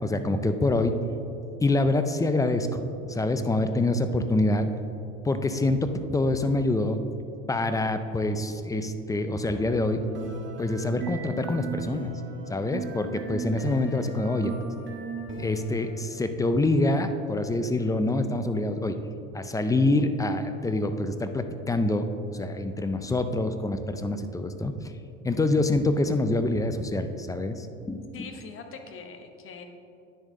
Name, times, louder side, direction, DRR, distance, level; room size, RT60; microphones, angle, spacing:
voice 1, 0.0-0.9 1.6-2.8 3.1-4.7 5.2-7.0 7.5-10.0 10.6-12.1 12.5-14.5 15.4-19.0 19.3-22.1 22.3-24.8 25.2-28.3, left 2 dB, 10° left, 9 dB, 0.4 m, -26 dB
sound 1, 9.4-15.9, right 2 dB, 35° right, 1.6 m, -36 dB
voice 2, 28.1-29.6, left 5 dB, 40° left, 5 dB, 1.0 m, -42 dB
10.0 x 6.4 x 3.7 m, 2.6 s
supercardioid pair, 105°, 33 cm